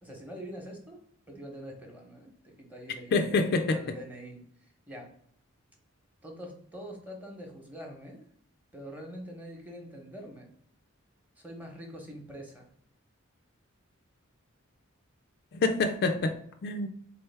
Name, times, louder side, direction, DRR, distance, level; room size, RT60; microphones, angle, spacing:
voice 1, 0.0-3.4 3.7-5.2 6.2-8.2 8.7-10.5 11.4-12.7, equal, 10° right, 0.9 m, -44 dB
voice 2, 3.1-4.0 15.5-16.9, left 3 dB, 50° left, 0.3 m, -27 dB
3.9 x 3.2 x 3.3 m
head